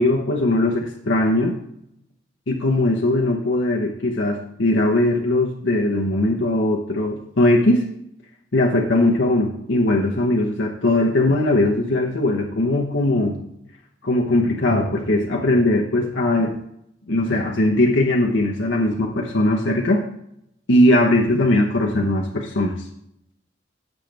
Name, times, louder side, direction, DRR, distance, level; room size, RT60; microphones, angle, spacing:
voice 1, 0.0-1.5 2.5-7.9 8.5-13.4 14.0-16.6 17.1-20.1 20.7-22.9, left 1 dB, 65° left, 0 dB, 1.0 m, -19 dB
14.5 x 5.2 x 3.4 m, 0.77 s
head